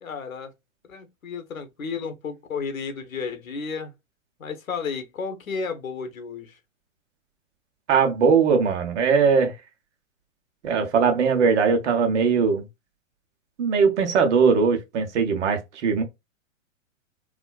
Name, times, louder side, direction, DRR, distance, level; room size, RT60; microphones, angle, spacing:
voice 1, 0.0-0.5 0.8-3.9 4.4-6.6, left 5 dB, 85° left, 1.1 m, -32 dB
voice 2, 7.9-9.5 10.6-12.7 13.6-16.0, right 5 dB, 55° right, 1.2 m, -20 dB
3.6 x 2.5 x 2.3 m
hypercardioid pair, 125°, 40 cm